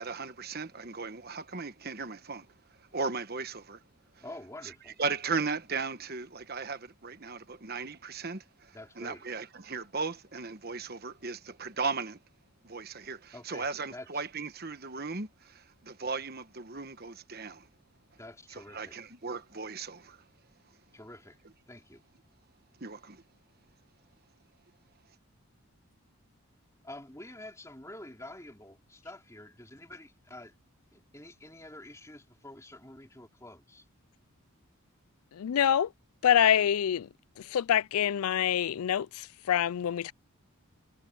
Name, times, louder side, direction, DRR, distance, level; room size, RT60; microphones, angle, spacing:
voice 1, 0.0-2.5 2.9-3.8 5.0-12.2 12.6-17.7 18.7-20.2 22.8-23.2, right 4 dB, 45° right, 1.2 m, -36 dB
voice 2, 4.2-5.0 8.7-9.2 13.3-14.2 18.2-19.0 20.9-21.4 21.7-22.0 26.8-30.5 30.9-33.9, left 1 dB, 15° left, 3.2 m, -48 dB
voice 3, 35.4-35.9 36.2-37.1 37.5-40.1, left 9 dB, 80° left, 0.4 m, -26 dB
head